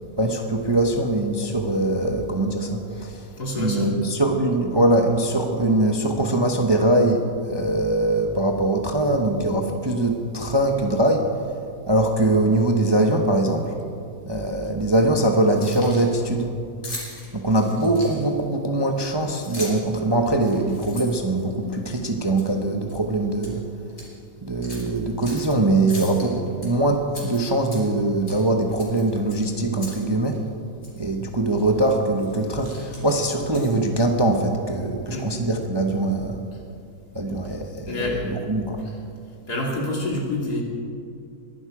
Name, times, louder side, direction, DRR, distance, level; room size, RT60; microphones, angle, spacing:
voice 1, 0.2-3.3 3.5-11.3 11.9-13.7 14.2-16.5 17.3-23.6 24.4-30.4 31.0-36.4 37.1-38.8, right 1 dB, 20° right, 3 dB, 0.8 m, -22 dB
voice 2, 3.4-3.9 35.1-35.3 36.5-36.6 37.9-38.2 38.8-38.9 39.5-40.6, left 1 dB, 75° left, -1 dB, 3.2 m, -27 dB
Keys jangling, 15.4-16.1 16.8-18.4 19.2-19.9 20.4-21.9 22.4-22.6 22.9-23.5 23.9-24.1 24.6-25.5 25.9-26.7 27.1-28.0 28.3-28.5 28.8-30.0 30.3-30.4 30.8-31.0 31.6-31.8 32.2-33.9, left 2 dB, 55° left, 4.0 m, -39 dB
21.5 x 11.5 x 4.9 m, 2.4 s
omnidirectional pair, 1.7 m